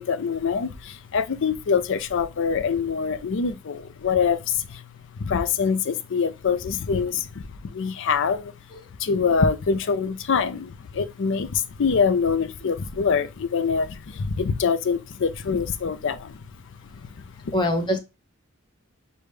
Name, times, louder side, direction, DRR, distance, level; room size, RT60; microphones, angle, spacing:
voice 1, 0.0-8.5 9.0-17.5, left 5 dB, 65° left, 0.5 m, -25 dB
voice 2, 17.5-18.0, left 1 dB, 20° left, 0.9 m, -24 dB
6.7 x 2.2 x 3.2 m
head